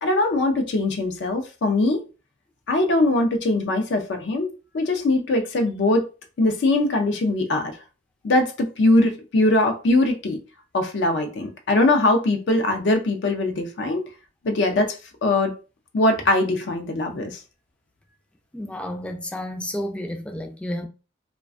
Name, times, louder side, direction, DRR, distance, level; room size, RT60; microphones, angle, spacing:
voice 1, 0.0-2.0 2.7-4.5 4.7-6.1 6.4-7.8 8.2-10.4 10.7-14.0 14.4-15.0 15.2-15.5 15.9-17.4, left 2 dB, 65° left, 0.4 m, -21 dB
voice 2, 18.5-20.9, left 1 dB, 5° left, 0.3 m, -31 dB
2.4 x 2.1 x 2.4 m
head